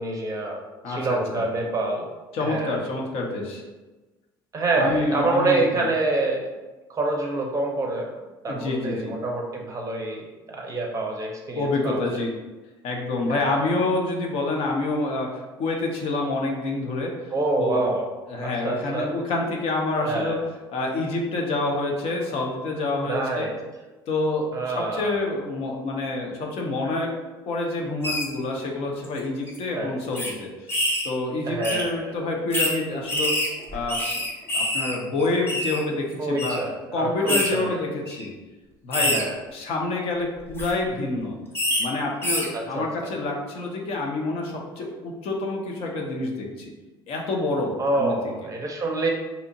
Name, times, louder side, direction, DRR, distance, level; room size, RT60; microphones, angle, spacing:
voice 1, 0.0-2.1 2.4-2.8 4.5-6.5 6.9-8.1 8.4-12.0 13.3-13.7 17.3-18.1 18.4-19.1 20.0-20.4 23.1-23.5 24.5-25.1 29.7-29.9 31.5-32.1 36.2-37.8 39.0-39.4 42.5-43.1 47.8-49.1, right 2 dB, 25° right, 0 dB, 0.6 m, -27 dB
voice 2, 0.8-1.5 2.3-3.6 4.8-5.9 8.5-9.1 11.6-12.3 12.8-17.3 17.6-17.9 18.3-20.4 20.7-23.5 24.1-27.1 27.5-30.7 31.0-33.4 33.7-34.2 34.5-36.6 36.9-38.3 38.8-39.2 39.5-41.4 41.8-46.7 47.1-48.1, left 2 dB, 55° left, 0 dB, 0.6 m, -27 dB
sound 1, 28.0-28.2 29.0-29.2 29.5-29.6 30.2-30.3 30.7-31.1 31.6-31.8 32.5-32.7 33.1-34.9 35.2-35.8 36.4-36.6 37.3-37.5 38.1-38.2 38.9-39.2 40.4-40.7 41.6-41.8 42.2-42.5, left 1 dB, 20° left, 0.8 m, -25 dB
2.7 x 2.1 x 2.7 m, 1.2 s
hypercardioid pair, 65°, 12 cm